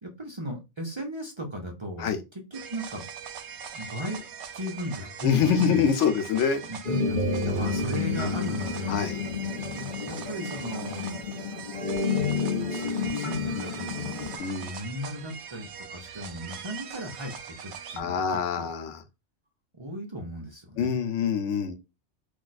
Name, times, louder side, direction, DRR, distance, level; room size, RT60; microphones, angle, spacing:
voice 1, 0.0-3.0 3.7-4.2 4.5-5.9 6.6-11.2 12.7-14.3 14.6-17.3 17.6-18.7 19.7-21.0, equal, 35° right, 0.5 m, -37 dB
sound 1, 2.5-18.0, right 7 dB, 75° right, 0.8 m, -41 dB
voice 2, 5.2-6.6 8.9-9.2 14.4-14.7 18.0-19.0 20.8-21.7, left 7 dB, 90° left, 0.9 m, -25 dB
sound 2, 6.8-14.4, left 4 dB, 50° left, 0.7 m, -30 dB
2.6 x 2.3 x 4.0 m
omnidirectional pair, 1.2 m